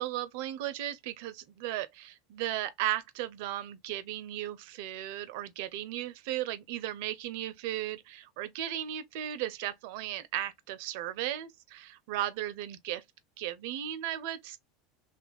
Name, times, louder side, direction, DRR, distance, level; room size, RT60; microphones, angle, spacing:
voice 1, 0.0-13.0 13.4-14.6, right 13 dB, 65° right, 0.4 m, -36 dB
2.9 x 2.3 x 3.3 m
hypercardioid pair, 90°, 0 cm